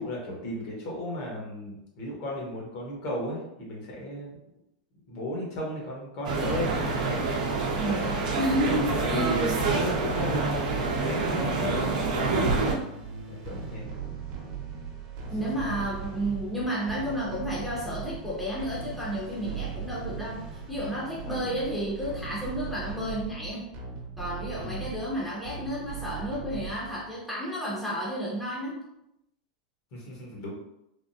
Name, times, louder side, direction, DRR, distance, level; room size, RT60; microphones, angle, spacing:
voice 1, 0.0-4.4 5.1-7.2 8.0-8.1 8.9-12.7 13.3-13.9 15.7-15.8 21.2-21.6 24.6-24.9 29.9-30.5, left 1 dB, 45° left, -2 dB, 1.1 m, -35 dB
sound 1, 6.2-12.7, right 3 dB, 85° right, 0.6 m, -27 dB
voice 2, 8.4-9.3 15.3-23.7 24.2-28.8, equal, ahead, -7 dB, 0.7 m, -32 dB
sound 2, 11.7-27.1, right 6 dB, 45° right, 0.8 m, -39 dB
3.4 x 2.0 x 2.7 m, 0.84 s
supercardioid pair, 145°, 4 cm